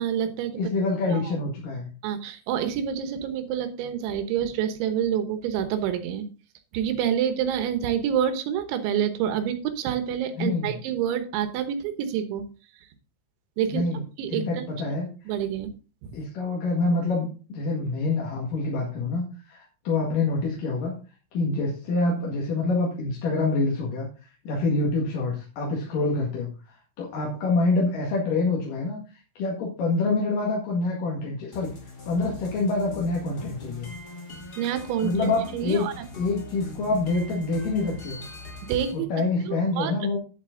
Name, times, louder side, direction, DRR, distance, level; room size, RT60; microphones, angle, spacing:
voice 1, 0.0-0.6 1.1-1.3 2.0-6.3 6.7-12.4 13.6-13.8 14.2-14.8 15.3-15.7 16.0-16.2 34.6-35.9 38.7-39.1 39.5-40.1, right 9 dB, 90° right, 9 dB, 3.5 m, -27 dB
voice 2, 0.6-1.9 10.4-10.8 13.7-14.0 14.3-15.1 16.1-20.9 21.3-24.1 24.4-29.0 29.4-31.7 32.1-33.9 35.0-35.9 36.2-38.2 38.9-40.2, left 3 dB, 55° left, -3 dB, 3.1 m, -26 dB
sound 1, 31.5-38.9, left 2 dB, 35° left, 1.8 m, -41 dB
11.0 x 7.7 x 3.8 m, 0.35 s
omnidirectional pair, 5.2 m